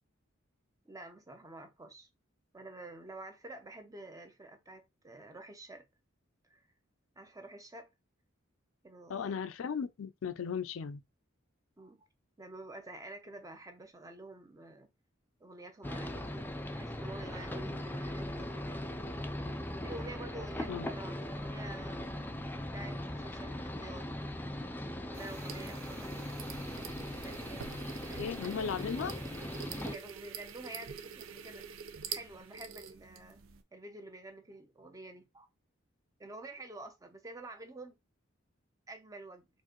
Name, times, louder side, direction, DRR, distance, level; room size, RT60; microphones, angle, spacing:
voice 1, 0.8-2.1 2.5-5.8 6.5-6.6 7.2-7.9 8.8-9.4 11.8-12.1 12.4-14.9 15.4-18.8 19.8-22.1 22.6-24.1 25.1-26.1 27.2-27.7 28.1-28.5 28.8-29.1 29.9-31.7 32.1-33.4 33.7-35.5 36.2-38.0 38.9-39.5, right 2 dB, 15° right, 0.7 m, -49 dB
voice 2, 9.1-11.0 20.7-20.9 28.1-29.1, left 6 dB, 80° left, 0.4 m, -36 dB
sound 1, 15.8-30.0, left 1 dB, 10° left, 0.4 m, -39 dB
sound 2, 25.1-33.6, right 7 dB, 80° right, 0.6 m, -46 dB
4.5 x 2.6 x 3.0 m
head